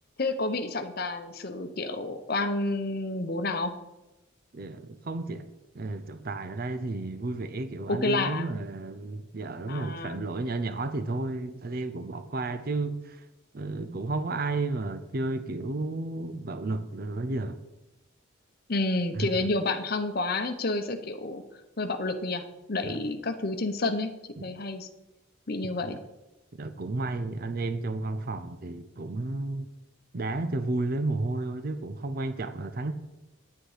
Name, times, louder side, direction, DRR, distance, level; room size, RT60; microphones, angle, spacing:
voice 1, 0.2-3.7 7.9-8.5 9.7-10.2 18.7-21.4 21.8-22.4 22.7-24.1 24.4-24.9 25.5-26.0, left 2 dB, 45° left, 0.9 m, -29 dB
voice 2, 4.5-5.5 5.7-13.3 13.5-17.6 19.2-19.5 22.8-23.0 25.8-26.0 26.5-29.7 30.1-32.9, right 2 dB, 45° right, 0.5 m, -32 dB
9.5 x 8.8 x 5.0 m
head